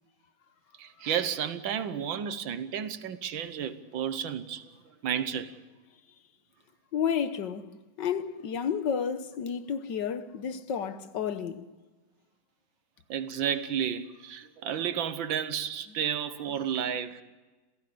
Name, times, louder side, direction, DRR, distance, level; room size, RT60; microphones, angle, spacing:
voice 1, 0.8-4.7 5.0-5.5 13.1-17.2, right 8 dB, 75° right, 1.8 m, -32 dB
voice 2, 6.9-7.7 8.0-11.6, left 7 dB, 65° left, 1.6 m, -31 dB
27.5 x 17.0 x 6.9 m
omnidirectional pair, 2.1 m